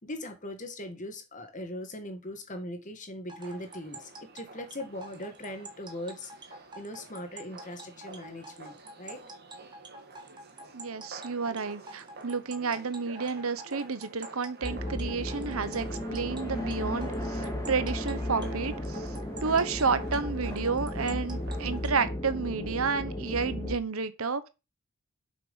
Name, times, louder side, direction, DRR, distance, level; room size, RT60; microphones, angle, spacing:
voice 1, 0.0-9.2, left 1 dB, 35° left, 1.8 m, -40 dB
sound 1, 3.3-22.0, right 2 dB, 20° right, 1.6 m, -47 dB
sound 2, 3.4-21.9, right 3 dB, 45° right, 2.0 m, -49 dB
voice 2, 10.7-19.1 19.4-24.5, right 5 dB, 70° right, 1.0 m, -31 dB
sound 3, 14.6-23.8, left 1 dB, 15° left, 2.0 m, -34 dB
7.6 x 6.1 x 5.6 m
head